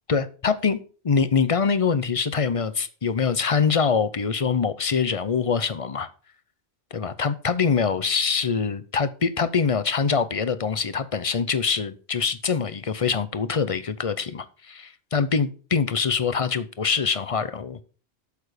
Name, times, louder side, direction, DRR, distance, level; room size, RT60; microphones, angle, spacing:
voice 1, 0.1-0.8 1.0-6.1 6.9-17.8, left 5 dB, 35° left, 0.7 m, -24 dB
8.2 x 7.0 x 5.1 m
omnidirectional pair, 1.1 m